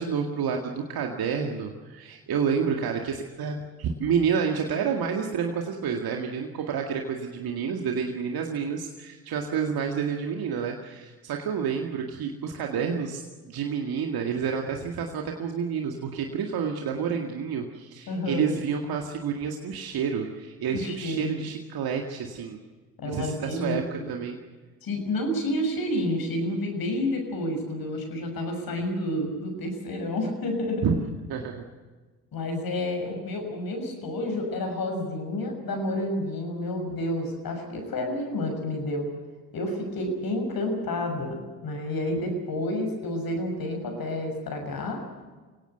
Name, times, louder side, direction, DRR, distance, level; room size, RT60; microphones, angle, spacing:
voice 1, 0.0-22.6 23.0-24.4 30.8-31.0 31.3-31.6, right 6 dB, 65° right, 3 dB, 2.1 m, -29 dB
voice 2, 18.1-18.5 20.7-21.4 23.0-24.1 24.8-30.9 32.3-39.0 39.5-45.0, left 1 dB, 65° left, 3 dB, 6.6 m, -30 dB
24.0 x 17.5 x 8.1 m, 1.3 s
hypercardioid pair, 45°, 39 cm